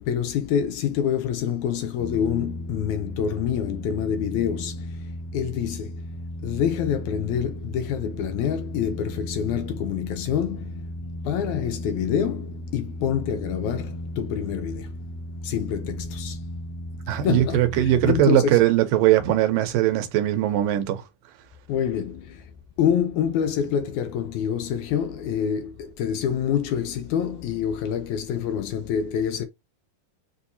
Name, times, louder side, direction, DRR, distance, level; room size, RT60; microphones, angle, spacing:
voice 1, 0.0-6.1 6.4-10.9 11.2-15.0 15.4-16.4 17.1-18.5 21.7-22.5 22.8-29.5, left 8 dB, 80° left, 1.9 m, -27 dB
sound 1, 2.0-18.2, equal, 5° left, 0.5 m, -35 dB
voice 2, 17.1-21.0, right 12 dB, 85° right, 2.5 m, -20 dB
7.1 x 2.7 x 2.7 m
omnidirectional pair, 3.8 m